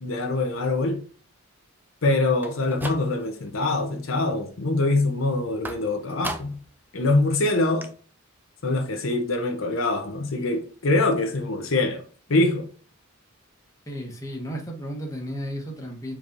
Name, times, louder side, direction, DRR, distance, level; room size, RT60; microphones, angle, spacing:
voice 1, 0.0-1.0 2.0-6.6 6.9-7.9 8.6-12.0 12.3-12.7, left 2 dB, 70° left, 0.7 m, -24 dB
sound 1, 2.3-3.5 3.9-4.4 5.6-6.8 7.1-7.2 7.5-7.6 7.8-7.9, right 2 dB, 10° right, 0.4 m, -37 dB
voice 2, 13.9-16.2, equal, 15° left, 1.0 m, -33 dB
4.6 x 4.0 x 2.6 m
head